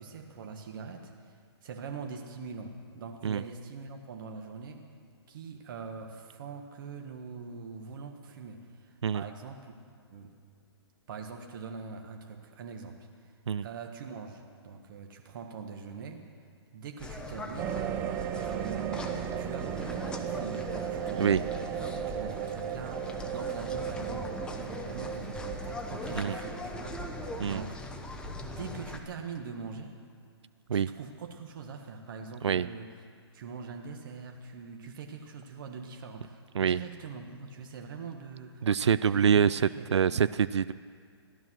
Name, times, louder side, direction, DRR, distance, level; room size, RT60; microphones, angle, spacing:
voice 1, 0.0-4.9 5.3-9.7 10.1-10.3 11.1-13.0 13.6-16.2 16.7-17.8 18.4-21.4 21.7-24.3 24.6-26.9 27.5-27.8 28.4-30.0 30.7-32.9 33.3-38.7 39.1-39.3 39.8-40.3, right 5 dB, 50° right, 3 dB, 1.5 m, -43 dB
sound 1, 17.0-29.0, left 2 dB, 5° left, 0.8 m, -40 dB
sound 2, 17.6-27.4, right 10 dB, 15° right, 0.3 m, -36 dB
voice 2, 38.6-40.7, right 7 dB, 85° right, 15 dB, 0.4 m, -25 dB
15.0 x 12.0 x 6.2 m, 2.1 s
hypercardioid pair, 140°, 14 cm